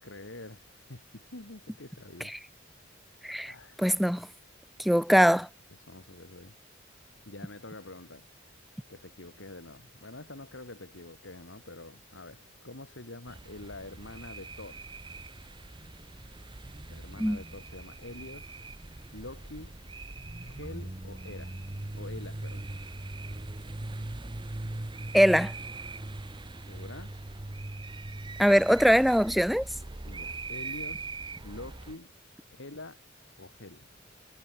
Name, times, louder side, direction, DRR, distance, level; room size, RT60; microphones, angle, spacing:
voice 1, 0.0-2.3 3.4-4.1 5.7-6.6 6.9-8.5 8.9-14.8 16.9-18.6 19.1-19.7 20.4-21.6 21.9-22.7 26.7-27.1 30.1-32.1 32.5-33.0 33.4-33.9, left 2 dB, 70° left, 2.5 m, -46 dB
voice 2, 3.8-4.3 4.8-5.5 17.2-17.4 25.1-25.5 28.4-29.7, equal, ahead, 0.4 m, -22 dB
sound 1, 13.3-32.0, right 2 dB, 25° right, 0.8 m, -41 dB
head